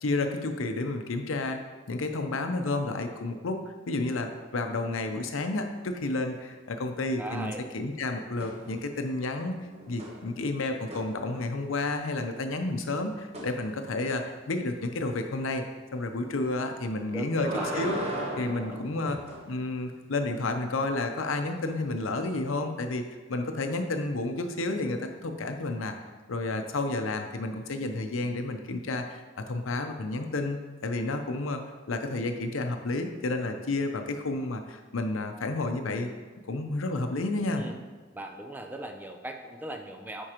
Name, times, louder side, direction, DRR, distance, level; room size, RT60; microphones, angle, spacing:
voice 1, 0.0-1.6 1.9-3.6 3.9-9.5 9.9-15.6 15.9-18.0 18.4-19.2 19.5-23.0 23.3-25.9 26.3-31.6 31.9-36.1 36.5-37.6, left 2 dB, 85° left, 6 dB, 0.7 m, -31 dB
voice 2, 7.2-7.6 17.1-17.9 37.5-37.8 38.1-40.2, right 1 dB, 10° right, 4 dB, 0.5 m, -38 dB
sound 1, 8.4-9.0 9.4-11.8 13.3-13.5 16.9-19.5 21.7-21.8, right 1 dB, 30° right, 1.0 m, -37 dB
9.8 x 4.6 x 3.0 m, 1.3 s
head